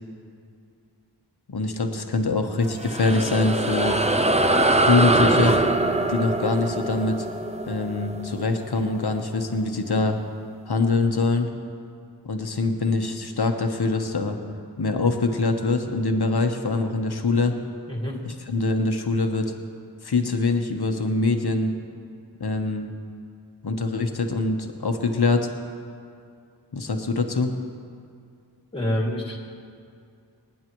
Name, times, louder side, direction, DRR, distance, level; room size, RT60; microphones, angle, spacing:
voice 1, 1.5-4.0 4.8-5.6 6.1-7.2 7.7-10.2 10.7-11.5 12.2-14.4 14.8-17.6 18.2-19.5 20.0-21.7 22.4-22.9 23.6-25.5 26.7-27.5, left 3 dB, 60° left, 4 dB, 1.1 m, -24 dB
sound 1, 2.6-9.4, right 2 dB, 15° right, 0.6 m, -23 dB
voice 2, 28.7-29.4, equal, 15° left, -2 dB, 2.4 m, -26 dB
27.0 x 9.3 x 3.1 m, 2.4 s
wide cardioid pair, 75°, 42 cm